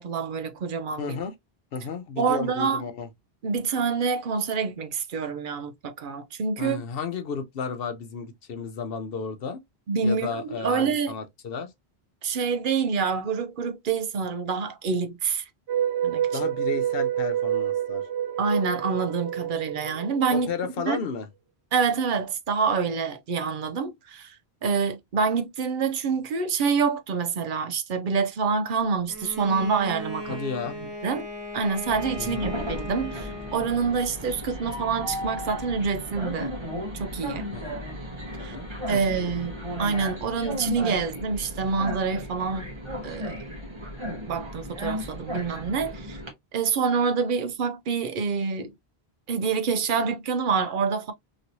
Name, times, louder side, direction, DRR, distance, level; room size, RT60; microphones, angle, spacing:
voice 1, 0.0-1.2 2.2-2.8 3.4-6.8 9.9-11.2 12.2-15.4 16.0-16.5 18.4-20.5 20.9-21.0 21.7-24.4 24.6-30.4 30.7-31.3 31.5-36.5 36.9-37.5 38.4-38.6 38.9-42.7 43.0-43.3 44.3-46.2 46.5-48.7 49.3-51.1, right 5 dB, 60° right, 0.7 m, -27 dB
voice 2, 1.0-1.3 1.7-3.1 6.6-9.6 10.0-11.7 16.3-18.0 20.3-21.3 30.3-30.8 32.2-32.5 37.5-37.8 38.4-39.3, left 5 dB, 65° left, 0.8 m, -33 dB
sound 1, 15.7-20.9, right 10 dB, 85° right, 0.9 m, -28 dB
Bowed string instrument, 29.1-34.2, left 1 dB, ahead, 1.5 m, -37 dB
Train, 31.9-46.3, equal, 30° right, 1.0 m, -35 dB
3.0 x 2.9 x 2.6 m
omnidirectional pair, 1.1 m